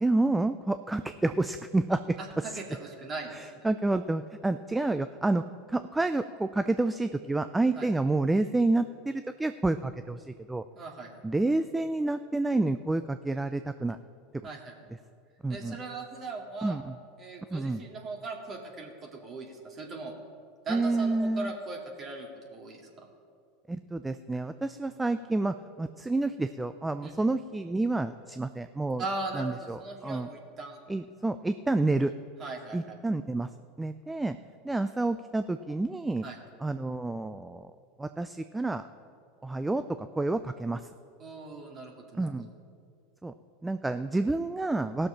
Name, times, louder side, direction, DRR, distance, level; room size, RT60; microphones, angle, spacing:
voice 1, 0.0-2.6 3.3-10.6 11.2-14.0 15.4-15.8 16.6-17.0 17.5-17.8 20.7-21.5 23.7-29.0 29.3-30.3 30.9-32.1 32.7-33.5 33.8-34.4 34.6-36.3 36.6-37.7 38.0-38.8 39.4-40.9 42.1-42.5 43.2-43.3 43.6-45.1, right 2 dB, 10° right, 11 dB, 0.4 m, -29 dB
voice 2, 2.2-3.6 7.8-7.9 10.8-11.1 14.4-14.7 15.5-16.8 17.2-20.1 20.6-23.1 27.0-27.1 29.0-30.8 32.0-32.1 32.4-33.0 36.2-36.4 41.2-42.3, right 3 dB, 35° right, 0 dB, 2.2 m, -39 dB
16.5 x 6.6 x 5.7 m, 2.3 s
hypercardioid pair, 85°, 0 cm